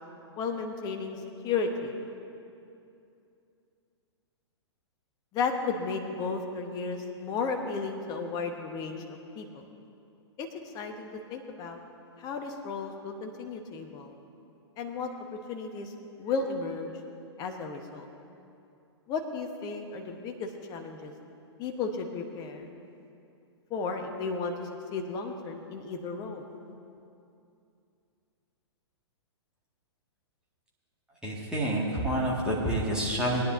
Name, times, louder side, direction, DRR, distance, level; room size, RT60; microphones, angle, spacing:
voice 1, 0.4-1.9 5.3-9.6 10.4-10.5 10.7-11.8 12.2-14.1 14.8-15.9 16.2-16.9 17.4-18.1 19.1-21.1 21.6-22.7 23.7-26.4, left 4 dB, 25° left, 4 dB, 1.1 m, -34 dB
voice 2, 31.2-33.4, right 1 dB, 5° right, -6 dB, 1.9 m, -28 dB
21.0 x 10.0 x 2.6 m, 2.6 s
figure-of-eight pair, 110°, 15 cm